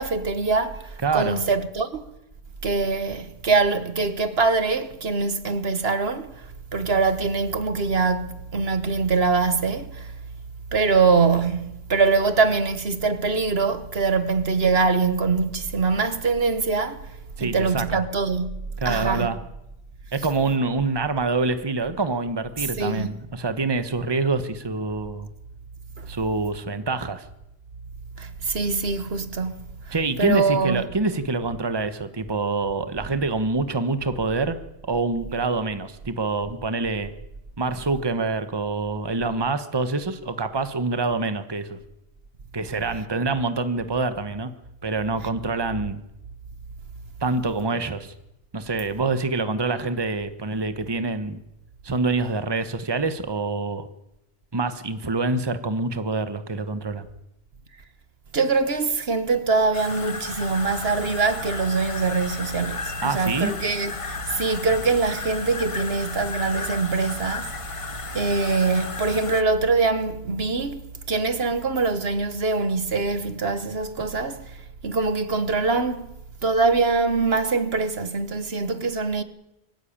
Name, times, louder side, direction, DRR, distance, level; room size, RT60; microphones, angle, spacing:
voice 1, 0.0-2.1 2.6-10.1 10.7-18.6 18.8-19.3 22.6-23.1 26.0-26.1 28.2-29.6 29.9-30.8 58.3-67.8 68.1-74.6 74.8-76.1 76.4-79.2, right 4 dB, 70° right, 1.5 m, -23 dB
voice 2, 1.0-1.4 17.4-18.0 18.8-19.4 20.1-25.3 26.1-27.2 29.9-34.6 34.9-37.1 37.6-41.8 42.5-44.5 44.8-46.0 47.2-48.1 48.5-51.4 51.8-53.9 54.5-57.1 63.0-63.6, right 3 dB, 25° right, 1.2 m, -26 dB
sound 1, 59.7-69.4, left 4 dB, 30° left, 1.0 m, -34 dB
24.0 x 15.0 x 8.8 m
omnidirectional pair, 1.1 m